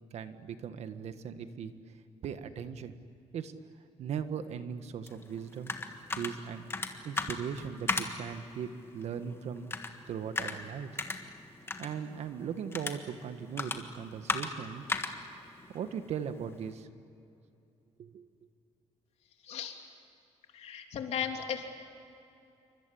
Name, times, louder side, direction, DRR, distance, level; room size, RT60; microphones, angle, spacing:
voice 1, 0.1-1.7 2.2-3.0 3.3-3.5 4.0-5.7 6.1-6.6 7.0-9.7 10.1-10.9 11.8-14.9 15.7-16.9 18.0-18.3, right 7 dB, 65° right, 9 dB, 1.6 m, -38 dB
sound 1, 5.1-16.7, left 3 dB, 20° left, 1.7 m, -39 dB
voice 2, 19.4-19.8 20.5-21.7, left 8 dB, 65° left, 4 dB, 3.1 m, -36 dB
28.5 x 24.5 x 8.6 m, 2.7 s
cardioid pair, 155°, 12 cm